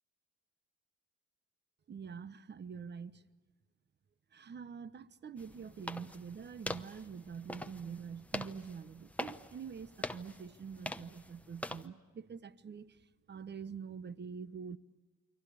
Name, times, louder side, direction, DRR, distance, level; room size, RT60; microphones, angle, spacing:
voice 1, 1.9-3.2 4.3-13.0 13.3-14.8, right 6 dB, 35° right, 0.9 m, -45 dB
sound 1, 5.4-11.9, left 1 dB, 5° left, 0.9 m, -44 dB
29.5 x 23.5 x 8.4 m
cardioid pair, 90°, 30 cm